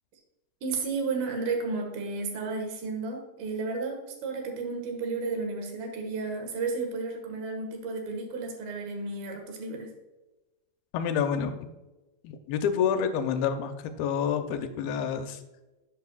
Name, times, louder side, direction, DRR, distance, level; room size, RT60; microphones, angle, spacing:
voice 1, 0.6-9.9, right 4 dB, 75° right, 3 dB, 3.3 m, -32 dB
voice 2, 10.9-11.6 12.2-15.4, left 7 dB, 80° left, 7 dB, 2.6 m, -28 dB
10.5 x 8.4 x 2.4 m, 1.1 s
omnidirectional pair, 4.4 m